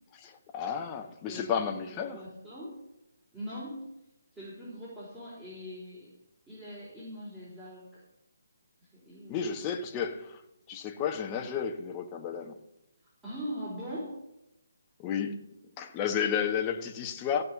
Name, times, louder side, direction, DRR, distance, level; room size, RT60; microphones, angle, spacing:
voice 1, 0.2-2.2 9.3-10.4 10.7-12.6 15.0-15.5 15.8-17.4, left 7 dB, 20° left, 1.2 m, -32 dB
voice 2, 1.3-2.8 3.3-3.9 4.3-6.1 6.5-8.0 8.9-9.4 13.2-14.2, equal, 10° right, 4.3 m, -41 dB
15.5 x 5.5 x 8.3 m
figure-of-eight pair, 150°, 0 cm